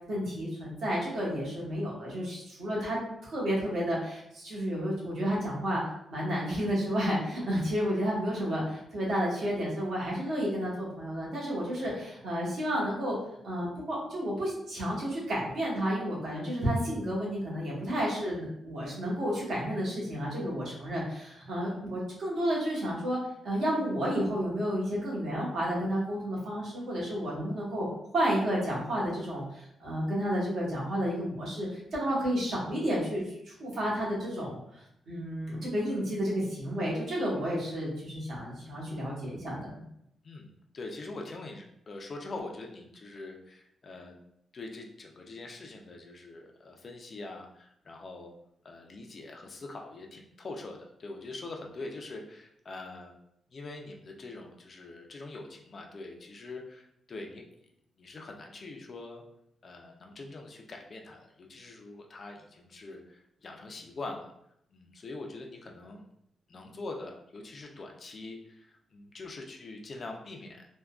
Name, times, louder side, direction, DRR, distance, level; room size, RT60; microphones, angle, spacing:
voice 1, 0.1-5.8 6.1-13.2 13.4-23.2 23.4-27.9 28.1-39.8, equal, 60° right, -5 dB, 1.1 m, -31 dB
voice 2, 40.2-44.1 44.5-48.3 48.6-53.1 53.5-57.4 58.0-59.2 59.6-64.3 64.7-66.0 66.5-70.7, left 2 dB, 35° left, 2 dB, 0.3 m, -43 dB
3.4 x 2.1 x 2.3 m, 0.75 s
wide cardioid pair, 160°, 0 cm